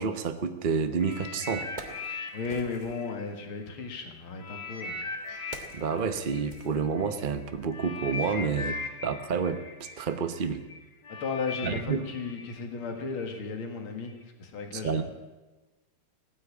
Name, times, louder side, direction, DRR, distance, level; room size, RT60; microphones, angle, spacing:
voice 1, 0.0-1.7 5.7-10.6 11.6-12.1 14.7-15.0, right 5 dB, 75° right, 8 dB, 0.4 m, -29 dB
Wood, 0.9-1.0 1.5-3.1 4.1-7.4 7.7-7.9, right 3 dB, 25° right, 1.2 m, -47 dB
sound 1, 1.0-3.9 4.4-13.4 14.1-14.2, left 4 dB, 55° left, 2.2 m, -40 dB
voice 2, 2.3-5.0 11.1-15.0, left 4 dB, 70° left, 5 dB, 2.6 m, -35 dB
17.0 x 9.8 x 8.6 m, 1.2 s
omnidirectional pair, 2.4 m